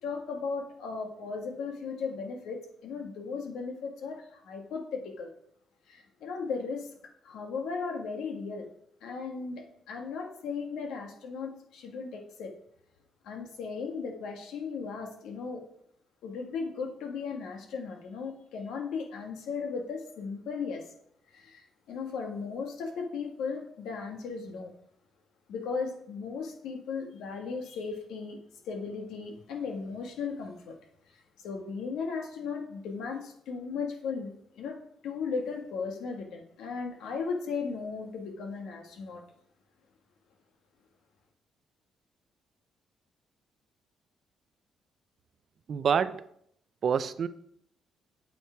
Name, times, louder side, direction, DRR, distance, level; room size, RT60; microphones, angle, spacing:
voice 1, 0.0-5.3 5.9-6.9 7.2-8.7 9.0-12.5 13.2-15.6 16.2-20.9 21.3-24.7 25.5-30.8 31.1-39.2, left 5 dB, 85° left, 3 dB, 1.7 m, -36 dB
voice 2, 45.7-46.2 46.8-47.3, right 7 dB, 55° right, 14 dB, 0.6 m, -26 dB
8.6 x 7.4 x 4.5 m, 0.70 s
cardioid pair, 90°, 0 cm